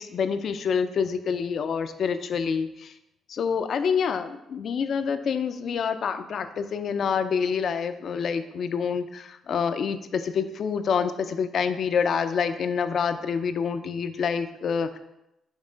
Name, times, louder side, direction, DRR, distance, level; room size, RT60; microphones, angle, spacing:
voice 1, 0.0-2.9 3.3-15.0, left 6 dB, 60° left, 10 dB, 0.5 m, -27 dB
6.4 x 3.2 x 5.0 m, 0.87 s
cardioid pair, 90°, 0 cm